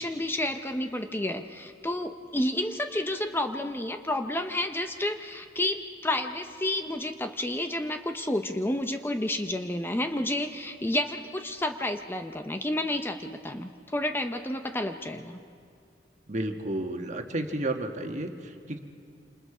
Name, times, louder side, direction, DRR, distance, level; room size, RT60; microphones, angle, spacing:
voice 1, 0.0-15.4, left 1 dB, 15° left, 6 dB, 0.7 m, -30 dB
voice 2, 16.3-18.8, right 1 dB, 45° right, 4 dB, 1.5 m, -32 dB
27.5 x 27.5 x 4.9 m, 2.5 s
head